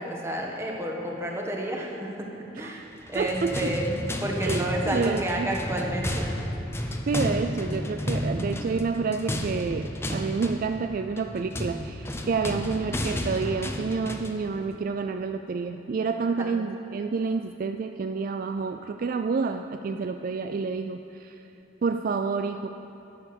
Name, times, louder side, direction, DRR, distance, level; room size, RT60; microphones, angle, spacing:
voice 1, 0.0-2.8 3.1-6.3 16.3-16.5, right 1 dB, 15° right, 0 dB, 1.3 m, -31 dB
voice 2, 2.6-2.9 3.1-3.7 4.4-5.5 7.1-21.4 21.8-22.7, right 4 dB, 50° right, 7 dB, 0.3 m, -29 dB
sound 1, 3.0-14.4, left 1 dB, 15° left, 0.7 m, -32 dB
11.0 x 8.5 x 6.7 m, 2.9 s
head